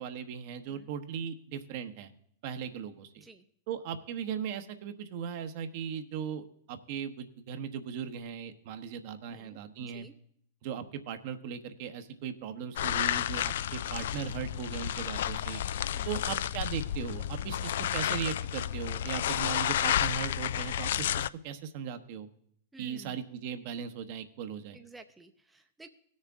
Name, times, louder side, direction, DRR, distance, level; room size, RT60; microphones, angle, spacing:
voice 1, 0.0-2.1 2.4-3.3 3.7-10.1 10.6-15.6 16.1-22.3 22.8-24.8, right 7 dB, 55° right, 8 dB, 1.1 m, -38 dB
voice 2, 9.3-10.1 15.9-16.2 22.7-23.2 24.7-25.9, right 2 dB, 10° right, 6 dB, 0.7 m, -53 dB
sound 1, 12.8-21.3, left 11 dB, 70° left, 0.3 m, -31 dB
18.0 x 6.5 x 3.6 m, 0.66 s
hypercardioid pair, 110°, 0 cm